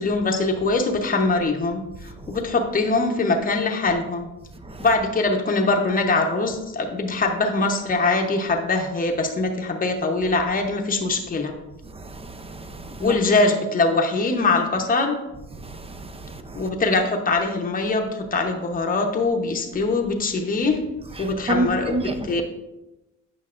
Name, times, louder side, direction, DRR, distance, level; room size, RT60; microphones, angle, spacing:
voice 1, 0.0-1.8 2.3-4.3 4.8-11.5 13.0-15.2 16.5-20.8 21.2-22.4, left 3 dB, 30° left, 0.9 m, -22 dB
voice 2, 11.9-13.2 15.5-16.7 21.2-22.4, right 2 dB, 20° right, 0.6 m, -30 dB
8.1 x 5.4 x 2.5 m
cardioid pair, 90°, 30 cm